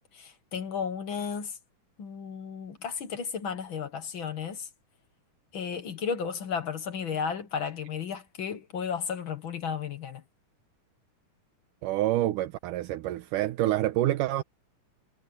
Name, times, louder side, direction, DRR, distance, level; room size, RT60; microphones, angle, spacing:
voice 1, 0.1-1.5 2.0-4.7 5.5-10.2, left 6 dB, 55° left, 1.5 m, -34 dB
voice 2, 11.8-14.4, right 14 dB, 80° right, 2.5 m, -27 dB
omnidirectional pair, 3.7 m